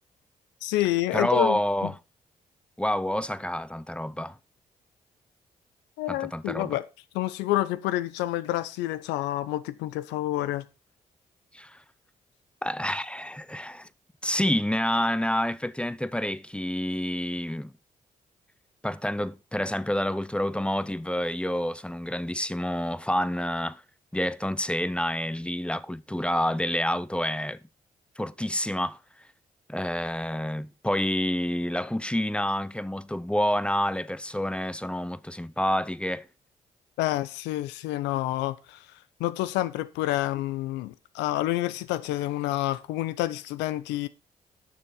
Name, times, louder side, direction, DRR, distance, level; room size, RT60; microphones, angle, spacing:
voice 1, 0.6-1.9 6.0-6.8 7.1-10.6 37.0-38.8 39.2-44.1, left 15 dB, 80° left, 0.7 m, -28 dB
voice 2, 1.1-2.0 2.8-4.4 6.1-6.8 11.5-11.8 12.6-13.9 14.2-17.7 18.8-23.8 24.1-27.6 28.2-29.0 29.7-36.3, left 1 dB, 5° left, 0.7 m, -28 dB
9.5 x 6.8 x 5.4 m
hypercardioid pair, 40°, 18 cm